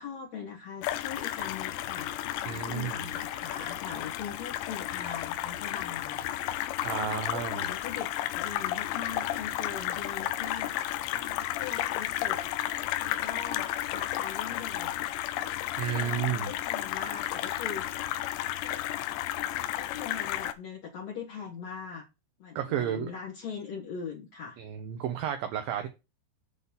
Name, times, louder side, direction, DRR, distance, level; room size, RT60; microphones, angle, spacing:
voice 1, 0.0-6.3 6.7-8.1 8.3-12.4 13.0-15.2 15.9-18.0 18.6-18.8 19.7-22.0 22.4-24.6, left 6 dB, 65° left, 1.7 m, -41 dB
sound 1, 0.8-20.5, left 13 dB, 85° left, 3.0 m, -33 dB
voice 2, 2.5-3.0 6.8-7.7 15.8-16.5 22.6-23.1 24.6-25.9, right 9 dB, 85° right, 2.0 m, -32 dB
8.2 x 4.1 x 7.0 m
omnidirectional pair, 5.2 m